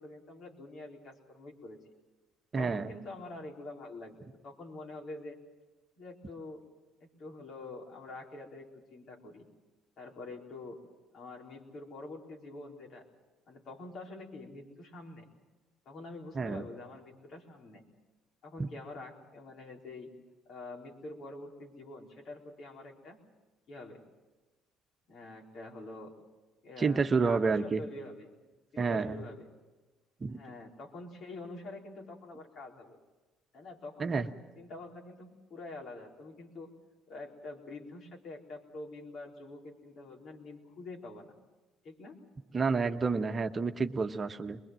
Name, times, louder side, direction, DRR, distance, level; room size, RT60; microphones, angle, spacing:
voice 1, 0.0-1.8 2.6-5.4 6.0-6.7 7.0-9.5 10.0-10.8 11.1-13.1 13.5-15.3 15.9-17.8 18.4-20.1 20.5-23.2 23.7-24.0 25.1-26.1 26.6-28.3 28.7-29.5 30.3-33.0 33.5-36.7 37.1-41.4 41.8-42.2, left 2 dB, 60° left, 0 dB, 4.3 m, -46 dB
voice 2, 2.5-2.9 16.3-16.6 18.6-18.7 26.8-27.8 28.8-29.2 30.2-30.4 34.0-34.3 42.5-44.6, right 4 dB, 35° right, 6 dB, 1.2 m, -29 dB
22.5 x 22.0 x 7.7 m, 1.2 s
hypercardioid pair, 60°, 0 cm